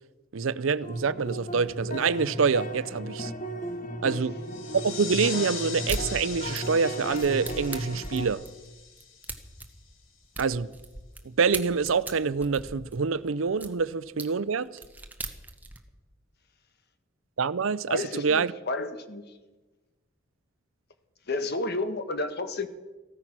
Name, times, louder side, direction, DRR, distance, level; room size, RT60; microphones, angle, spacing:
voice 1, 0.3-3.3 4.0-4.3 4.7-8.4 10.4-10.7 11.2-14.7 17.4-18.5, right 5 dB, 75° right, 0.6 m, -26 dB
sound 1, 0.8-8.3, right 1 dB, 40° left, 1.5 m, -36 dB
sound 2, 4.4-9.8, left 6 dB, 75° left, 2.1 m, -40 dB
sound 3, 5.9-6.1 6.6-11.2 11.5-13.7 14.2-14.3 14.7-15.8, right 2 dB, 10° right, 1.2 m, -38 dB
voice 2, 17.9-19.3 21.3-22.7, left 2 dB, 55° left, 1.3 m, -31 dB
15.0 x 14.0 x 6.1 m
head